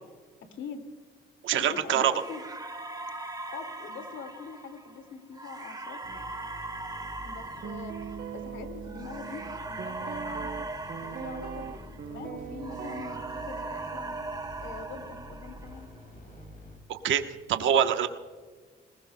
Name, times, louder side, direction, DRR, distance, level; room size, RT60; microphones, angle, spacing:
voice 1, 0.5-0.8 1.5-2.4 3.5-6.0 7.2-7.9 8.3-10.7 10.9-14.2 14.6-15.9, left 6 dB, 70° left, 6 dB, 2.3 m, -43 dB
voice 2, 1.4-2.1 16.9-17.2 17.5-18.1, right 9 dB, 75° right, 7 dB, 1.1 m, -24 dB
sound 1, 2.1-12.3 12.6-16.0, right 2 dB, 20° right, 1.6 m, -40 dB
sound 2, 6.0-16.8, left 2 dB, 45° left, 5.1 m, -48 dB
Guitar, 7.6-15.8, right 8 dB, 50° right, 0.8 m, -42 dB
20.0 x 20.0 x 2.2 m, 1.4 s
cardioid pair, 90°, 20 cm